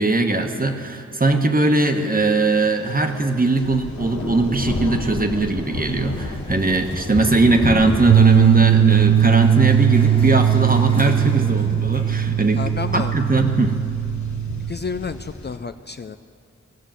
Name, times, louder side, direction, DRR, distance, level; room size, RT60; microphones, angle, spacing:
voice 1, 0.0-12.6 12.9-13.8, right 2 dB, 30° right, 5 dB, 1.2 m, -20 dB
sound 1, 2.9-15.6, left 2 dB, 75° left, 1.2 m, -32 dB
sound 2, 5.7-13.7, left 1 dB, 20° left, 1.6 m, -40 dB
sound 3, 8.1-14.7, right 10 dB, 65° right, 0.5 m, -18 dB
voice 2, 12.6-13.1 14.7-16.2, left 5 dB, 35° left, 9 dB, 0.4 m, -30 dB
17.0 x 6.5 x 7.4 m, 2.4 s
cardioid pair, 40°, 29 cm